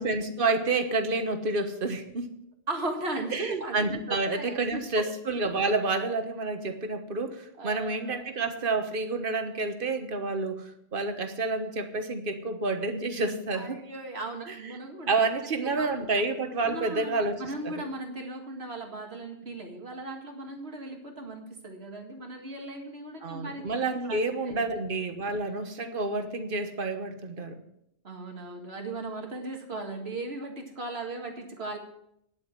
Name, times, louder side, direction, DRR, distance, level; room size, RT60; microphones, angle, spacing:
voice 1, 0.0-2.3 3.3-10.6 10.9-13.8 14.5-14.6 15.1-17.4 17.6-17.8 23.2-27.6, right 3 dB, 60° right, 7 dB, 1.4 m, -29 dB
voice 2, 2.7-5.1 7.6-8.2 13.5-15.1 15.6-16.1 16.7-24.2 24.4-24.6 28.0-31.8, right 2 dB, 85° right, 2 dB, 2.2 m, -37 dB
10.0 x 7.8 x 7.5 m, 0.76 s
omnidirectional pair, 1.0 m